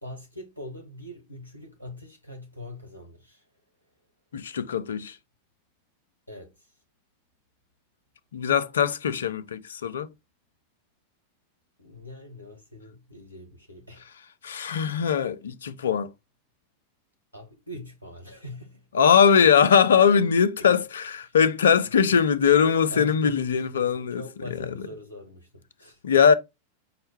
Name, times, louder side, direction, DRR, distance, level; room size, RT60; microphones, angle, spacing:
voice 1, 0.0-3.5 6.3-6.8 11.8-14.1 17.3-18.9 20.6-20.7 21.3-21.4 22.6-26.0, left 1 dB, 90° left, 0.9 m, -42 dB
voice 2, 4.3-5.2 8.3-10.1 14.4-16.1 18.9-24.2 26.0-26.3, left 7 dB, 65° left, 0.4 m, -21 dB
5.6 x 2.1 x 3.1 m
figure-of-eight pair, 90°, 0 cm